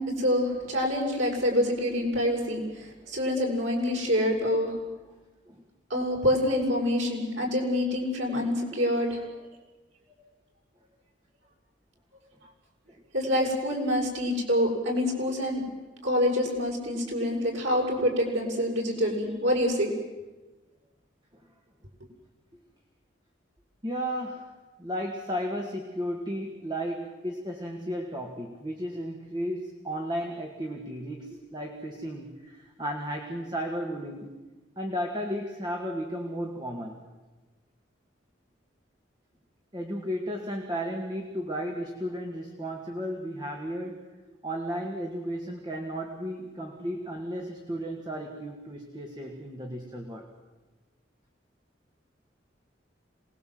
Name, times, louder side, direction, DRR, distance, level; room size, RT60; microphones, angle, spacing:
voice 1, 0.0-4.8 5.9-9.2 13.1-15.6 16.0-19.9, left 1 dB, 90° right, -1 dB, 6.8 m, -26 dB
voice 2, 23.8-24.5 24.8-34.3 34.8-37.0 39.7-44.0 44.4-50.3, equal, 25° right, 2 dB, 2.1 m, -34 dB
26.5 x 20.5 x 7.8 m, 1.2 s
head